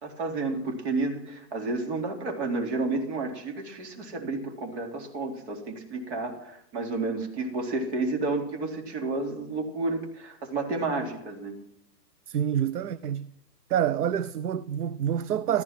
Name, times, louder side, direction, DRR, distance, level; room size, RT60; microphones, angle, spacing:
voice 1, 0.0-11.6, right 3 dB, 40° right, 3.8 m, -31 dB
voice 2, 12.3-13.3 13.7-15.6, right 9 dB, 65° right, 0.8 m, -27 dB
15.5 x 14.0 x 6.0 m
hypercardioid pair, 170°, 50 cm